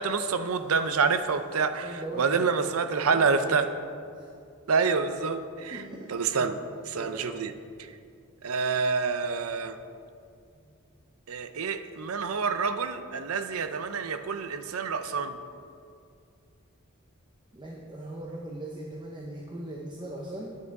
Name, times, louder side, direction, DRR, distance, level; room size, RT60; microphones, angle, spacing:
voice 1, 0.0-1.9 2.2-3.7 4.7-5.8 6.1-6.6 6.9-7.5 8.4-9.8 11.3-15.4, right 5 dB, 85° right, 10 dB, 0.6 m, -27 dB
voice 2, 1.8-2.4 3.0-3.6 4.1-4.3 5.7-6.1 6.4-6.5 7.0-7.3 10.5-10.7 17.5-20.6, right 1 dB, 20° right, -1 dB, 0.8 m, -39 dB
9.4 x 8.4 x 4.7 m, 2.4 s
head